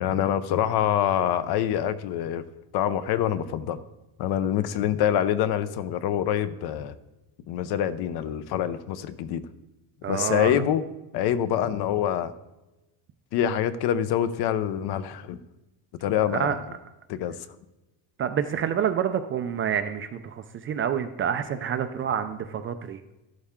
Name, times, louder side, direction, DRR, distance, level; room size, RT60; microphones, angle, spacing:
voice 1, 0.0-2.4 2.7-3.8 4.2-6.9 7.5-9.4 10.1-10.8 11.1-12.3 13.3-15.4 16.0-16.6 17.1-17.3, left 10 dB, 60° left, 13 dB, 0.8 m, -25 dB
voice 2, 10.0-10.6 16.3-16.6 18.2-23.0, right 8 dB, 30° right, 8 dB, 0.4 m, -28 dB
12.5 x 11.5 x 3.6 m, 1.0 s
cardioid pair, 170°, 44 cm